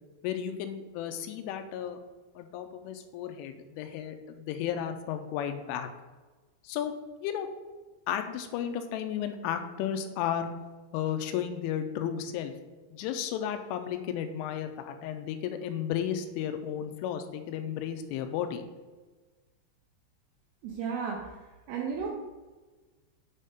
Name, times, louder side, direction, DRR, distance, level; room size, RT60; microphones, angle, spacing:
voice 1, 0.2-2.0 2.4-5.9 6.6-6.9 7.2-7.5 8.1-10.5 10.9-12.5 12.9-18.6, left 9 dB, 85° left, 7 dB, 3.1 m, -33 dB
voice 2, 20.6-22.1, right 6 dB, 85° right, -1 dB, 2.4 m, -34 dB
7.4 x 3.6 x 5.5 m, 1.2 s
omnidirectional pair, 5.6 m